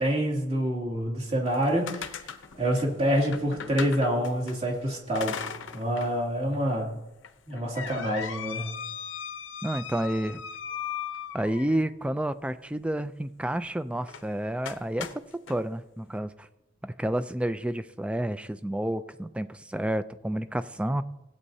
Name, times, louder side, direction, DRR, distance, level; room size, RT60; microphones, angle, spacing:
voice 1, 0.0-2.3 2.5-5.4 5.7-6.9 7.5-8.7, equal, 35° right, -2 dB, 2.3 m, -27 dB
sound 1, 1.5-4.6 5.1-6.1 6.5-6.6 7.2-11.9 14.0-14.3 14.6-15.6, left 7 dB, 85° left, 0.7 m, -38 dB
voice 2, 9.6-10.4 11.3-16.5 16.8-21.0, right 1 dB, 5° right, 12 dB, 0.3 m, -30 dB
17.0 x 8.6 x 2.7 m, 0.94 s
head